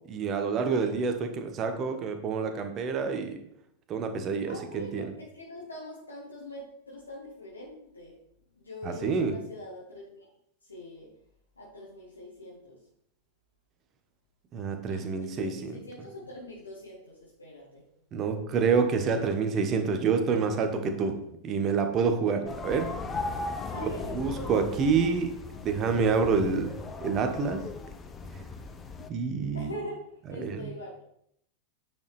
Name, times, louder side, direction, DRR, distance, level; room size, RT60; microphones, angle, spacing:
voice 1, 0.1-3.4 3.9-5.1 8.8-9.3 14.5-15.8 18.1-21.2 21.4-22.9 23.7-25.3 25.6-26.7 27.0-27.7 29.1-29.7 30.4-30.7, right 5 dB, 30° right, 7 dB, 1.1 m, -27 dB
voice 2, 4.4-8.1 8.5-10.3 10.7-11.1 11.6-12.8 14.9-17.8 23.7-25.1 25.5-25.6 29.5-30.9, left 1 dB, 80° left, -6 dB, 1.8 m, -43 dB
sound 1, 22.5-29.1, left 3 dB, 20° left, 0.7 m, -37 dB
9.1 x 5.3 x 3.4 m, 0.72 s
figure-of-eight pair, 90°, 0 cm